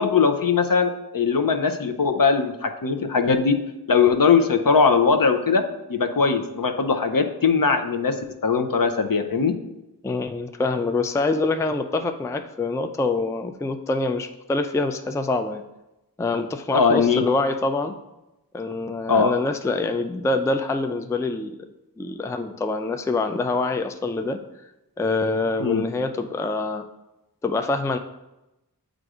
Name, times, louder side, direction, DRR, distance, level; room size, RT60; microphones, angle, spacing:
voice 1, 0.0-3.6 3.9-5.6 5.9-8.2 8.4-9.5 16.7-17.2 19.1-19.3 25.6-25.8, left 5 dB, 60° left, 6 dB, 0.6 m, -20 dB
voice 2, 10.0-15.6 16.2-17.9 18.5-21.6 22.0-24.4 25.0-26.9 27.4-28.0, left 3 dB, 10° left, 7 dB, 0.3 m, -25 dB
7.6 x 2.6 x 4.8 m, 0.94 s
wide cardioid pair, 50°, 38 cm